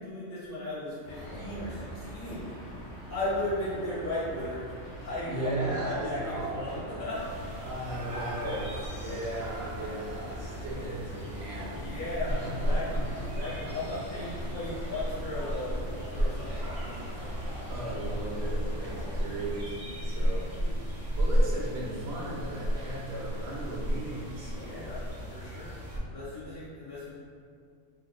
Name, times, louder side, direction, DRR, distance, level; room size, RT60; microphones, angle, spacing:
voice 1, 0.0-2.5 3.1-4.6 5.0-7.4 9.1-9.2 10.4-10.6 11.7-17.4 19.9-20.2 20.6-20.7 24.4-25.7 26.1-27.1, left 1 dB, 40° left, -9 dB, 1.7 m, -36 dB
sound 1, 1.0-19.6, equal, 65° left, 1.4 m, -43 dB
voice 2, 5.3-6.9 7.6-11.8 12.2-13.8 17.2-20.5 21.1-24.9, right 2 dB, 60° right, -4 dB, 1.1 m, -37 dB
sound 2, 7.1-26.0, equal, 30° right, 0.8 m, -34 dB
5.0 x 3.4 x 2.2 m, 2.3 s
omnidirectional pair, 1.3 m